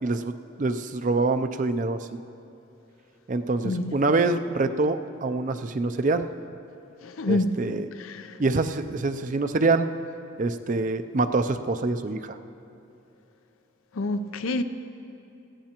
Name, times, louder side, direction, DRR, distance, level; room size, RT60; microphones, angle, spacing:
voice 1, 0.0-2.0 3.3-6.3 7.3-7.9 8.4-9.9 10.4-12.4, right 3 dB, 35° right, 9 dB, 0.4 m, -25 dB
voice 2, 7.0-7.5 8.0-8.4 14.0-14.6, left 2 dB, 80° left, 10 dB, 0.6 m, -27 dB
19.0 x 15.5 x 2.9 m, 2.9 s
head